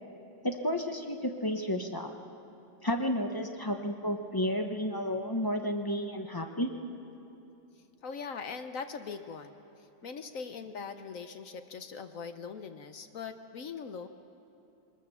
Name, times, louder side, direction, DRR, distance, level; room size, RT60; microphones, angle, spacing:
voice 1, 0.4-2.1 2.8-6.7, equal, 30° left, 4 dB, 0.4 m, -32 dB
voice 2, 8.0-9.6 10.0-14.1, left 5 dB, 60° left, 9 dB, 1.0 m, -41 dB
20.5 x 20.0 x 7.0 m, 2.9 s
omnidirectional pair, 2.1 m